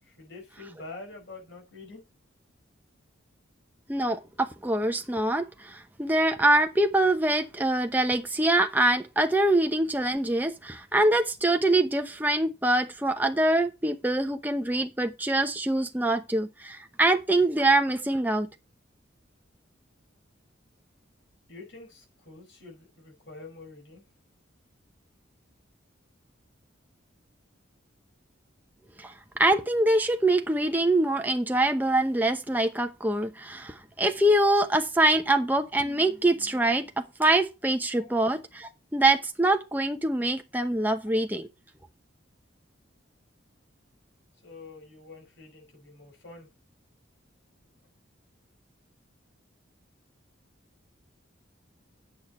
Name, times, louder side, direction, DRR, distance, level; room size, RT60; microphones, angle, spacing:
voice 1, 0.0-2.0 21.5-24.0 37.9-38.1 44.4-46.5, left 3 dB, 60° left, 5.2 m, -46 dB
voice 2, 3.9-18.5 29.0-41.5, right 1 dB, 10° right, 0.9 m, -24 dB
8.7 x 7.4 x 4.3 m
head